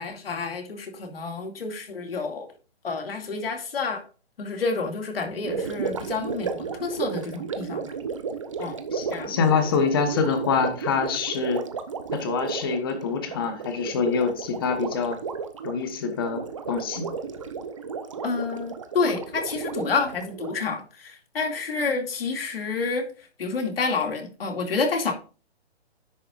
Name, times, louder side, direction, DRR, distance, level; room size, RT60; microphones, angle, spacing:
voice 1, 0.0-2.5 2.8-4.0 4.4-7.9 8.6-8.8 9.1-9.4 18.2-23.1 23.4-25.1, left 4 dB, 60° left, 2.3 m, -29 dB
Gurgling, 5.4-20.7, right 5 dB, 30° right, 0.7 m, -33 dB
voice 2, 8.9-11.6 12.1-15.2 15.6-17.0, left 5 dB, 20° left, 1.0 m, -25 dB
10.0 x 7.6 x 2.4 m
hypercardioid pair, 170°, 33 cm